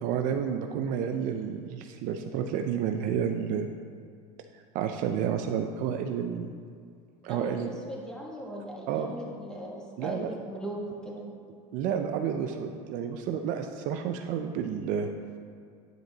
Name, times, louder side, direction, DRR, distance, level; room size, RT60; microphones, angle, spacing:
voice 1, 0.0-3.7 4.7-6.5 7.2-7.8 8.9-9.1 10.0-10.3 11.7-15.1, right 8 dB, 50° right, 5 dB, 0.5 m, -30 dB
voice 2, 7.3-11.2, right 1 dB, 5° left, -2 dB, 1.2 m, -39 dB
9.1 x 5.2 x 3.9 m, 2.4 s
supercardioid pair, 140°, 17 cm